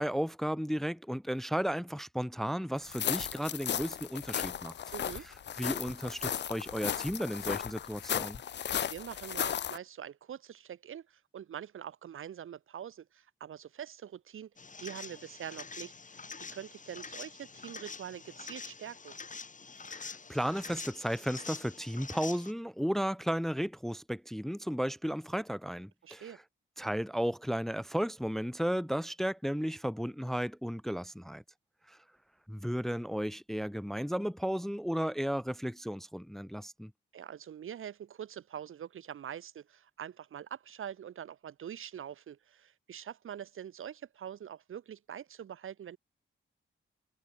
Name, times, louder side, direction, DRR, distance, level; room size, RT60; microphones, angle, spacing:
voice 1, 0.0-4.7 5.6-8.4 19.9-26.4 26.8-31.4 31.9-32.0 32.5-36.9, equal, ahead, 0.6 m, -34 dB
sound 1, 2.8-9.8, left 9 dB, 60° left, 0.6 m, -35 dB
voice 2, 4.9-5.3 8.8-14.5 14.8-16.3 16.5-19.2 26.0-26.4 37.1-46.0, right 9 dB, 85° right, 3.5 m, -44 dB
sound 2, 14.6-22.5, left 4 dB, 40° left, 2.6 m, -46 dB
cardioid pair, 95°, 21 cm